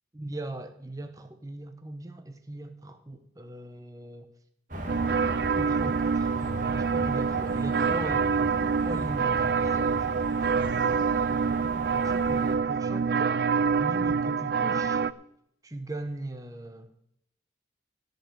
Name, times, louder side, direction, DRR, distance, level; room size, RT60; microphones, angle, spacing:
voice 1, 0.1-4.3 5.5-8.5 8.8-10.0 11.6-13.4 13.8-15.1 15.6-16.9, right 1 dB, 20° right, 7 dB, 0.9 m, -39 dB
sound 1, 4.7-12.5, right 1 dB, 45° right, 1.9 m, -37 dB
sound 2, 4.9-15.1, right 5 dB, 65° right, 0.4 m, -26 dB
16.0 x 5.4 x 9.3 m, 0.76 s
head